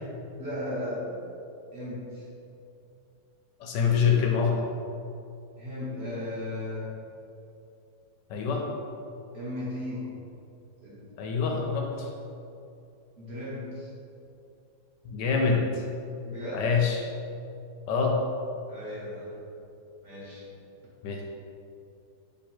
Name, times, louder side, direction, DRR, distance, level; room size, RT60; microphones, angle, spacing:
voice 1, 0.4-1.2 1.7-2.3 5.6-6.9 9.3-10.1 10.8-11.0 13.2-13.9 16.2-16.7 18.7-19.4 20.0-20.5, left 1 dB, 45° right, -8 dB, 1.0 m, -36 dB
voice 2, 3.6-4.6 8.3-8.6 11.2-12.1 15.0-15.8 16.5-17.0 17.9-18.2 21.0-21.3, left 5 dB, 75° left, 0 dB, 1.2 m, -25 dB
3.5 x 3.2 x 4.4 m, 2.6 s
omnidirectional pair, 2.0 m